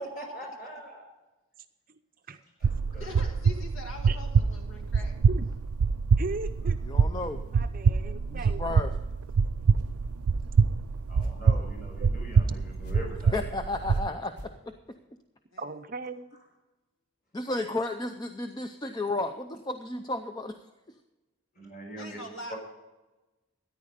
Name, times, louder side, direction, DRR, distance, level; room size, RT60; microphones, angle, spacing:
voice 1, 0.2-1.0 2.6-3.3 11.1-13.4 21.5-22.2 22.5-22.6, equal, 35° left, 0 dB, 5.4 m, -42 dB
sound 1, 2.6-14.1, right 5 dB, 85° right, 0.4 m, -25 dB
voice 2, 3.0-5.2 15.5-15.6 22.0-22.5, left 1 dB, 65° left, 3 dB, 1.8 m, -43 dB
voice 3, 6.2-6.8 7.5-8.9 15.6-16.3, right 3 dB, 40° right, 8 dB, 0.6 m, -38 dB
voice 4, 6.9-7.4 8.3-8.9 13.3-14.7 17.3-20.6, left 2 dB, 20° left, 7 dB, 0.5 m, -33 dB
sound 2, 9.6-10.2 11.1-11.6 12.7-13.2 13.9-14.6, equal, 85° left, 2.3 m, -46 dB
14.0 x 10.0 x 5.1 m, 1.1 s
head